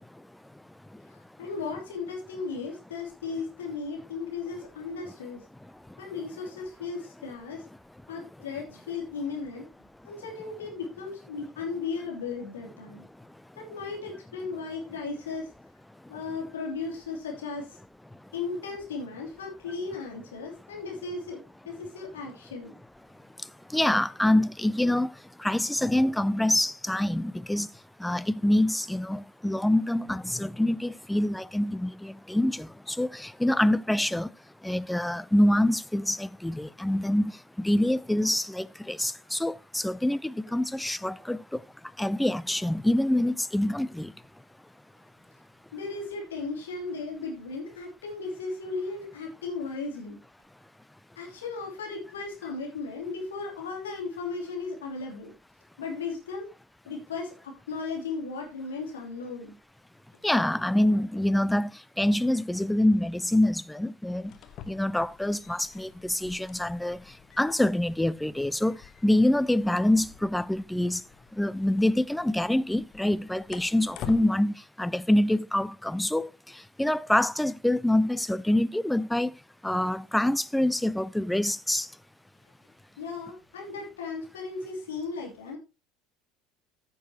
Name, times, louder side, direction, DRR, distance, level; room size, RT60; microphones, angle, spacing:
voice 1, 1.1-5.4 6.0-7.6 8.1-9.7 10.0-13.0 13.6-15.5 16.1-17.7 18.3-22.7 45.7-50.2 51.2-55.3 55.8-56.5 56.8-59.5 83.0-85.6, left 4 dB, 75° left, 2.9 m, -36 dB
voice 2, 23.7-25.1 25.4-27.7 28.0-34.3 34.6-37.3 37.6-41.6 42.0-44.1 60.2-61.7 62.0-64.3 64.7-67.0 67.4-68.8 69.0-71.0 71.4-76.3 76.8-79.3 79.6-81.9, left 1 dB, 5° left, 0.5 m, -25 dB
sound 1, 64.2-74.3, left 10 dB, 50° left, 1.0 m, -48 dB
14.0 x 7.0 x 2.9 m
figure-of-eight pair, 65°, 0 cm